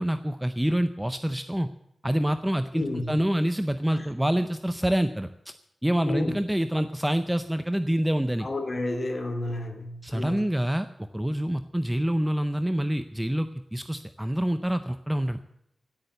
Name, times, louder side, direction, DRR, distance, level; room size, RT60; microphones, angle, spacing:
voice 1, 0.0-1.7 2.0-5.3 5.8-8.5 10.0-15.4, equal, 5° right, 10 dB, 0.5 m, -26 dB
voice 2, 2.7-3.1 3.9-4.1 6.0-6.3 8.4-10.4, left 2 dB, 30° left, 6 dB, 2.3 m, -31 dB
16.5 x 8.7 x 8.1 m, 0.79 s
wide cardioid pair, 180°, 0 cm